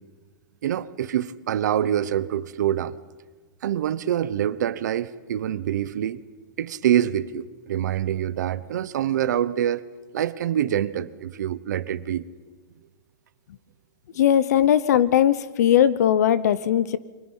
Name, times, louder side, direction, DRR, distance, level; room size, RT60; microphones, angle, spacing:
voice 1, 0.6-3.0 3.6-6.2 6.6-9.8 10.1-12.2, right 10 dB, 60° right, 17 dB, 1.0 m, -25 dB
voice 2, 14.2-17.0, left 10 dB, 55° left, 17 dB, 0.8 m, -19 dB
29.5 x 25.0 x 5.6 m, 1.3 s
supercardioid pair, 180°, 11 cm